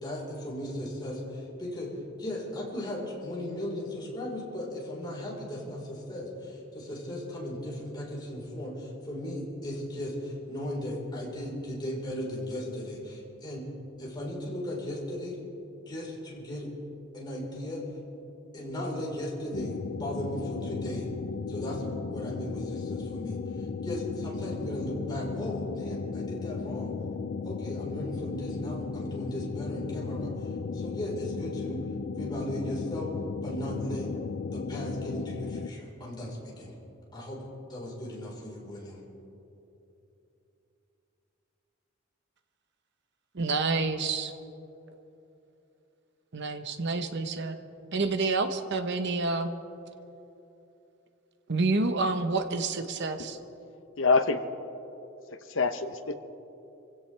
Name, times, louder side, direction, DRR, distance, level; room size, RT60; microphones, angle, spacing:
voice 1, 0.0-1.9 2.2-13.7 14.0-15.4 15.9-16.7 17.1-17.8 18.5-19.7 20.0-21.1 21.5-21.8 22.1-23.4 23.8-26.9 27.4-30.3 30.7-31.8 32.1-33.1 33.4-34.1 34.5-36.7 37.1-37.4 37.7-39.0, left 1 dB, 20° left, -4 dB, 4.4 m, -36 dB
sound 1, 19.5-35.7, left 4 dB, 55° left, 0.5 m, -35 dB
voice 2, 43.3-44.3 46.3-47.6 47.9-49.5 51.5-53.4, right 3 dB, 60° right, 8 dB, 1.0 m, -28 dB
voice 3, 54.0-54.4 55.5-56.1, left 4 dB, 70° left, 9 dB, 0.9 m, -25 dB
26.0 x 16.5 x 3.4 m, 3.0 s
head